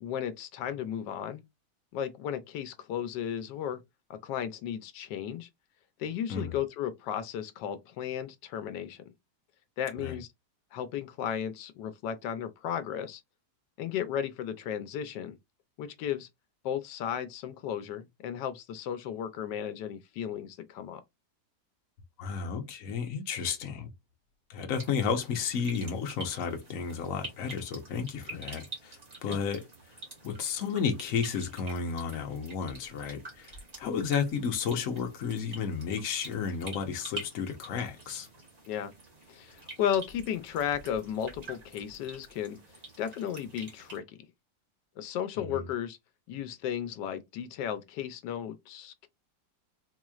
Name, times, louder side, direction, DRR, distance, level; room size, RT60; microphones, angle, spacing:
voice 1, 0.0-1.4 1.9-3.8 4.1-5.5 6.0-9.0 9.8-10.3 10.7-13.2 13.8-15.4 15.8-16.3 16.6-21.0 28.3-28.4 29.3-29.4 33.8-34.0 38.7-38.9 39.3-42.6 43.0-44.2 45.0-46.0 46.3-49.1, left 9 dB, 90° left, 1.3 m, -34 dB
voice 2, 22.2-23.9 24.5-29.0 29.2-29.6 30.2-38.3 45.4-45.6, left 6 dB, 60° left, 1.2 m, -32 dB
sound 1, 24.7-44.0, right 2 dB, 30° right, 1.0 m, -47 dB
4.4 x 3.0 x 2.3 m
omnidirectional pair, 1.8 m